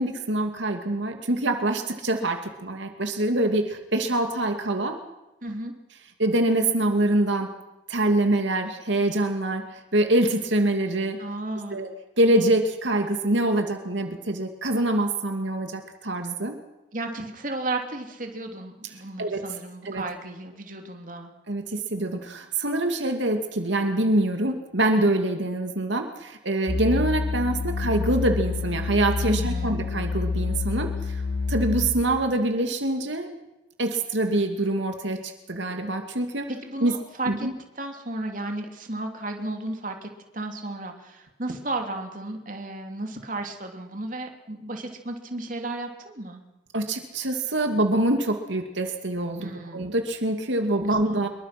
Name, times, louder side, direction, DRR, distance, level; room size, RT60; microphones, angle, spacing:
voice 1, 0.0-5.0 6.2-7.5 7.9-11.2 11.7-11.9 12.2-16.5 19.2-19.5 19.8-20.0 21.5-31.2 31.5-33.3 33.8-36.5 36.8-36.9 37.3-37.5 46.7-51.3, right 1 dB, 70° right, 5 dB, 2.4 m, -25 dB
voice 2, 5.4-5.7 11.2-11.9 16.9-21.3 29.3-29.8 36.5-37.5 37.8-46.4 49.4-49.9 50.9-51.3, right 2 dB, 40° right, 4 dB, 3.1 m, -34 dB
sound 1, 26.7-31.9, left 4 dB, 60° left, 4.9 m, -28 dB
26.5 x 23.0 x 6.0 m, 0.99 s
head